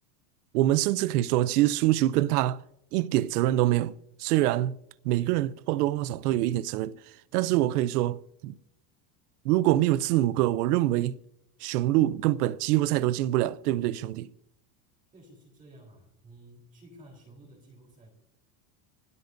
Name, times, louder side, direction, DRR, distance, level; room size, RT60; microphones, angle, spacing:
voice 1, 0.5-2.6 2.9-3.9 4.2-4.8 5.0-7.0 7.3-8.6 9.4-11.2 11.6-14.3, right 15 dB, 85° right, 0.7 m, -25 dB
voice 2, 15.1-18.1, right 1 dB, 20° right, 3.9 m, -53 dB
26.0 x 13.0 x 2.6 m
supercardioid pair, 165°, 45 cm